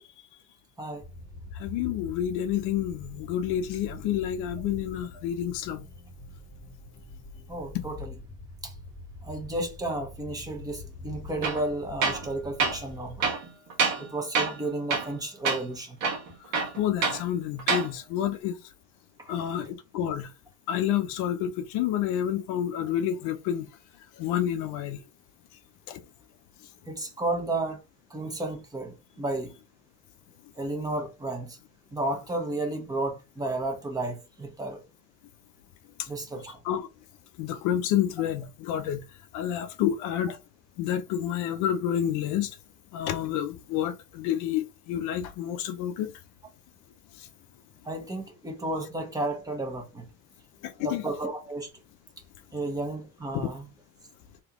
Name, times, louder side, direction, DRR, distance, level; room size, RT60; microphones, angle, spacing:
sound 1, 1.0-13.3, left 2 dB, 15° left, 1.7 m, -44 dB
voice 1, 1.6-5.8 7.7-7.8 16.8-18.6 19.3-20.3 20.7-23.7 24.2-25.0 25.9-26.0 36.0-36.1 36.5-36.9 37.4-39.0 39.3-40.4 40.8-42.6 42.9-46.1 47.2-47.3 50.6-51.0 53.4-53.5, left 10 dB, 65° left, 0.6 m, -29 dB
voice 2, 7.5-8.2 8.6-8.7 9.2-13.2 14.0-16.0 19.2-19.3 26.9-27.8 28.1-29.5 30.6-31.6 31.9-34.8 36.1-36.6 47.8-50.1 50.8-51.7 52.5-53.7, right 2 dB, 10° right, 1.1 m, -32 dB
Tools, 11.4-11.6 12.0-12.3 12.6-12.8 13.2-14.1 14.4-14.6 14.9-15.2 15.5-15.6 16.0-17.2 17.6-17.9, right 5 dB, 55° right, 1.3 m, -26 dB
3.5 x 3.0 x 3.6 m
cardioid pair, 130°, 33 cm